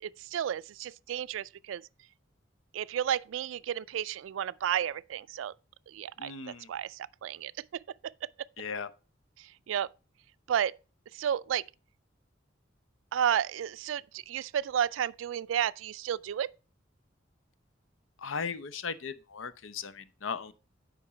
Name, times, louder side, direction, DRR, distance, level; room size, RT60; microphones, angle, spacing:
voice 1, 0.0-1.8 2.7-5.5 5.9-8.1 9.4-9.9 10.5-10.8 11.1-11.6 13.1-16.5, right 9 dB, 80° right, 0.3 m, -32 dB
voice 2, 6.2-6.7 8.6-8.9 18.2-20.5, left 5 dB, 85° left, 0.7 m, -37 dB
8.6 x 5.2 x 4.9 m
head